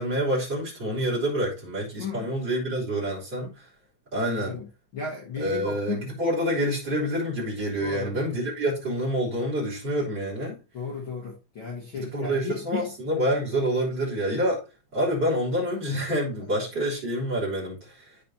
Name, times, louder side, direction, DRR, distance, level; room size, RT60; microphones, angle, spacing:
voice 1, 0.0-3.6 4.1-4.6 5.4-10.6 12.0-14.6 14.9-18.1, equal, 35° right, 4.0 m, -27 dB
voice 2, 2.0-2.3 4.3-4.7 4.9-6.1 7.8-8.1 10.7-12.9, left 5 dB, 50° left, 1.9 m, -34 dB
14.0 x 5.2 x 2.8 m
omnidirectional pair, 3.7 m